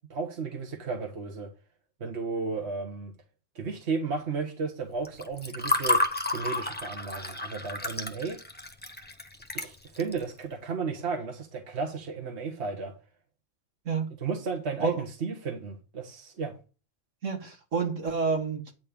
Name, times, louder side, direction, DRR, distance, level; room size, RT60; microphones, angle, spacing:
voice 1, 0.1-1.5 2.0-3.1 3.5-6.0 6.3-8.4 9.5-12.9 14.2-16.5, right 4 dB, 60° right, 1.5 m, -33 dB
Water / Fill (with liquid), 5.1-10.2, left 2 dB, 10° left, 0.9 m, -30 dB
voice 2, 17.2-18.7, right 4 dB, 75° right, 2.1 m, -29 dB
9.4 x 4.3 x 6.9 m
omnidirectional pair, 1.3 m